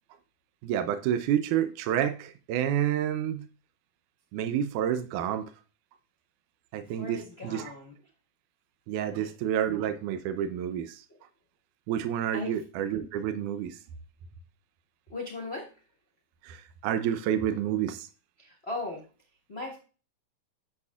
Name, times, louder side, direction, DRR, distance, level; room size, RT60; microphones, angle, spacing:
voice 1, 0.6-3.4 4.3-5.5 6.7-7.6 8.9-11.0 11.9-13.8 16.4-18.1, right 10 dB, 80° right, 2.0 m, -29 dB
voice 2, 6.9-7.9 9.1-9.4 11.1-11.2 12.3-12.6 15.1-15.7 18.4-19.0 19.5-19.8, left 2 dB, 60° left, 0.6 m, -38 dB
9.8 x 7.0 x 2.4 m
omnidirectional pair, 3.7 m